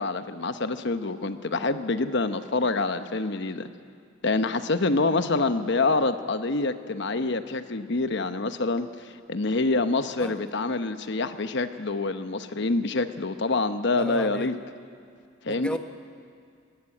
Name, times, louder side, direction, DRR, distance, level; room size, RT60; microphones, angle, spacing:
voice 1, 0.0-3.7 4.2-14.5 15.4-15.8, left 3 dB, 60° left, 10 dB, 1.0 m, -26 dB
voice 2, 14.0-14.5 15.5-15.8, equal, 5° left, 6 dB, 1.0 m, -33 dB
19.5 x 17.5 x 8.9 m, 2.3 s
head